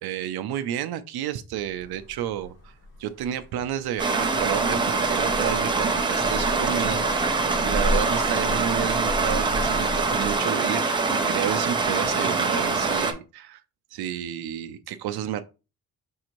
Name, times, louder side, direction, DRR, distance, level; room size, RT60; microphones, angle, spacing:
voice 1, 0.0-2.7 3.0-13.6 13.9-15.4, right 10 dB, 75° right, 0.5 m, -31 dB
sound 1, 1.6-10.4, left 1 dB, 70° left, 1.7 m, -34 dB
Stream, 4.0-13.1, right 4 dB, 15° right, 0.4 m, -24 dB
5.5 x 2.5 x 2.9 m
cardioid pair, 170°, 38 cm